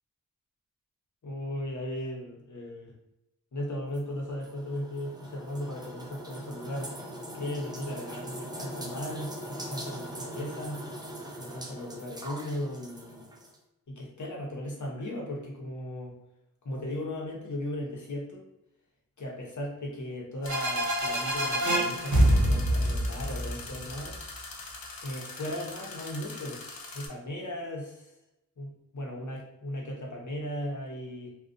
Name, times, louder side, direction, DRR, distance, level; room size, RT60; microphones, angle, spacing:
voice 1, 1.2-2.9 3.5-6.9 7.3-10.8 11.4-13.3 13.9-16.1 16.6-18.4 19.2-24.2 25.0-26.6 26.9-28.1 28.6-31.3, left 1 dB, 60° left, -2 dB, 0.8 m, -37 dB
sound 1, 3.9-13.6, right 1 dB, 10° right, 0.4 m, -41 dB
sound 2, 20.4-27.1, left 3 dB, 90° left, 0.5 m, -43 dB
sound 3, 20.5-24.1, right 1 dB, 55° right, 0.7 m, -25 dB
2.4 x 2.2 x 2.5 m, 0.89 s
wide cardioid pair, 50°, 34 cm